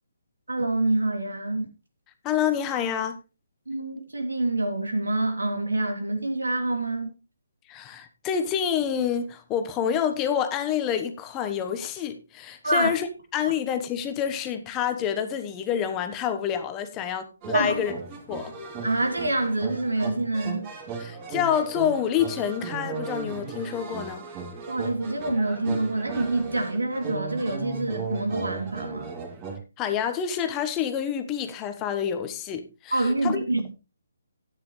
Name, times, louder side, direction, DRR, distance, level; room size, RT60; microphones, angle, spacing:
voice 1, 0.5-1.7 3.7-7.1 12.6-12.9 17.5-17.8 18.8-20.7 24.7-29.1 32.9-33.7, right 2 dB, 80° right, 2.8 m, -26 dB
voice 2, 2.2-3.2 7.7-13.1 13.3-17.9 18.3-18.5 21.0-24.2 29.8-33.4, left 9 dB, 20° left, 1.2 m, -27 dB
sound 1, 17.4-29.6, right 5 dB, 25° right, 2.8 m, -36 dB
12.5 x 9.7 x 3.2 m
figure-of-eight pair, 140°, 0 cm